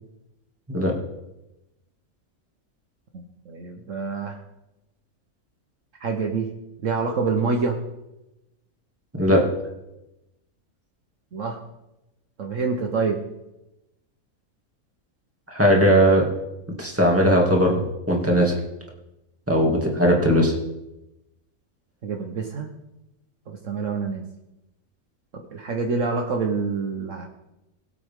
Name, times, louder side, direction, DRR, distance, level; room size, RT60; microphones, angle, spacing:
voice 1, 3.1-4.4 6.0-6.5 6.8-7.8 11.3-11.6 12.4-13.2 22.0-22.7 23.5-24.2 25.3-27.3, right 4 dB, 60° right, 3 dB, 1.4 m, -26 dB
voice 2, 15.5-16.2 16.8-17.7 18.1-18.6 19.5-20.5, equal, 10° right, -1 dB, 2.4 m, -18 dB
22.5 x 8.0 x 3.7 m, 0.94 s
omnidirectional pair, 1.5 m